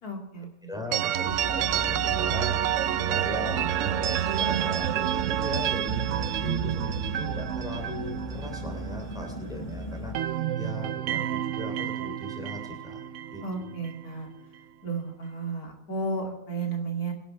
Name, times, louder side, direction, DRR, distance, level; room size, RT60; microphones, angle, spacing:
voice 1, 0.0-0.5 0.9-1.1 13.4-14.3 14.8-17.1, right 3 dB, 90° left, 2 dB, 3.1 m, -33 dB
voice 2, 0.6-10.2 10.5-13.0 13.3-13.4, left 2 dB, ahead, 2 dB, 3.1 m, -39 dB
sound 1, 0.9-9.6 9.9-14.0, right 11 dB, 65° right, 0.9 m, -29 dB
sound 2, 1.2-10.1, equal, 30° left, 6.8 m, -37 dB
23.0 x 12.0 x 3.4 m, 0.90 s
omnidirectional pair, 1.6 m